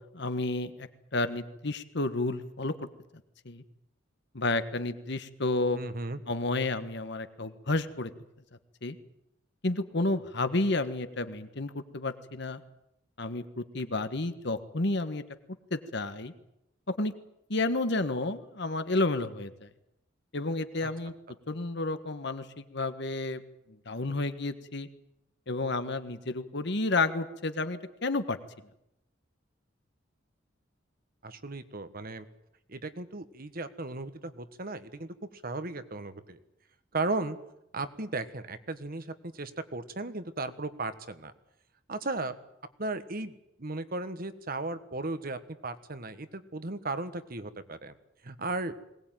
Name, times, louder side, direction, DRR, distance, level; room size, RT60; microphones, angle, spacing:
voice 1, 0.1-0.9 1.1-2.9 3.4-3.6 4.3-5.8 6.3-8.1 8.8-8.9 9.6-12.6 13.2-15.2 15.7-16.3 17.0-17.1 17.5-19.7 20.3-21.1 21.5-23.4 23.8-24.9 25.5-28.4, left 2 dB, 60° left, 10 dB, 1.5 m, -31 dB
voice 2, 5.7-6.2 20.8-20.9 31.2-32.2 32.7-36.4 36.9-37.4 37.7-41.3 41.9-42.3 42.8-47.9 48.2-48.7, right 2 dB, 50° right, 11 dB, 1.4 m, -36 dB
21.0 x 19.0 x 9.1 m, 0.84 s
head